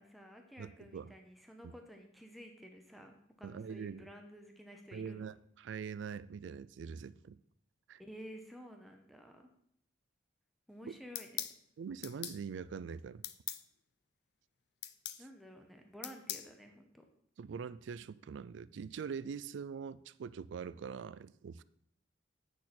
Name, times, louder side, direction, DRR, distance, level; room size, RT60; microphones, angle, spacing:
voice 1, 0.0-5.2 8.0-9.5 10.7-11.5 15.2-17.0, equal, ahead, 0.7 m, -52 dB
voice 2, 0.6-1.1 1.6-1.7 3.4-4.1 4.9-7.4 7.9-8.0 11.8-13.2 17.4-21.6, right 6 dB, 75° right, 0.3 m, -43 dB
sound 1, 11.1-11.6 12.0-12.4 13.2-13.6 14.8-15.2 16.0-16.5, left 13 dB, 60° left, 0.4 m, -40 dB
8.3 x 6.4 x 4.3 m
head